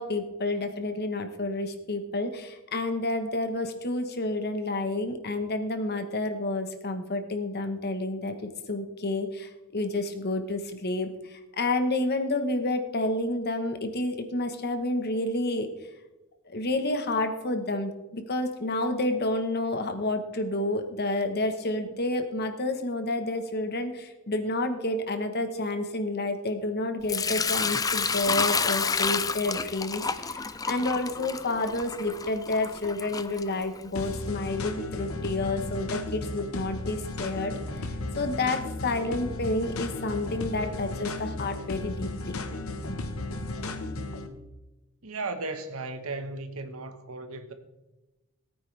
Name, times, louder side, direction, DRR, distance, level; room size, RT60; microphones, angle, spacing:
voice 1, 0.0-15.7 16.5-37.5 37.8-37.9 38.2-42.3 42.9-43.0 43.5-43.7, left 2 dB, 50° left, 1.2 m, -30 dB
Sink (filling or washing) / Liquid, 27.1-34.0, left 5 dB, 15° left, 0.4 m, -30 dB
sound 1, 33.9-44.3, left 2 dB, 80° left, 1.2 m, -35 dB
voice 2, 45.0-47.5, right 3 dB, 85° right, 1.3 m, -35 dB
18.5 x 9.1 x 3.4 m
head